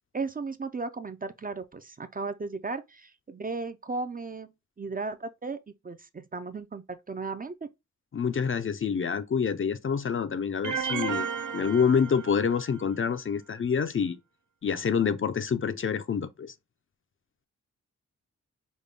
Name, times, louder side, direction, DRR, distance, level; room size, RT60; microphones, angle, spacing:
voice 1, 0.1-4.5 4.8-5.6 5.8-7.6, right 4 dB, 30° right, 0.4 m, -35 dB
voice 2, 8.1-11.3 11.5-14.2 14.6-16.5, left 6 dB, 45° left, 0.4 m, -27 dB
sound 1, 10.6-12.7, right 7 dB, 80° right, 0.5 m, -33 dB
5.2 x 2.2 x 3.3 m
wide cardioid pair, 125°, 30 cm